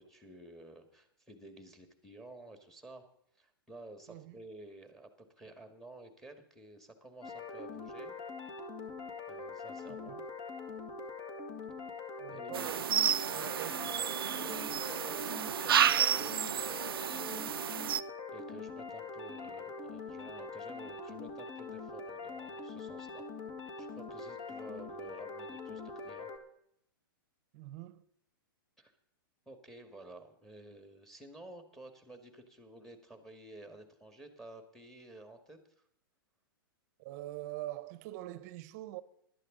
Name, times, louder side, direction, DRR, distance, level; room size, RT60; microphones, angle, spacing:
voice 1, 0.0-3.1 3.4-8.2 9.3-10.2 12.3-14.0 14.3-18.0 18.3-23.2 23.8-26.3 28.8-28.9 29.5-35.6, right 1 dB, 5° left, 1.8 m, -52 dB
voice 2, 4.1-4.4 10.1-10.2 12.2-12.9 13.3-13.8 27.5-28.1 37.0-39.0, right 15 dB, 45° right, 0.8 m, -44 dB
sound 1, 7.2-26.4, left 4 dB, 40° left, 2.0 m, -43 dB
sound 2, 12.5-18.0, right 9 dB, 85° right, 0.4 m, -31 dB
16.0 x 11.5 x 3.8 m
hypercardioid pair, 125°, 12 cm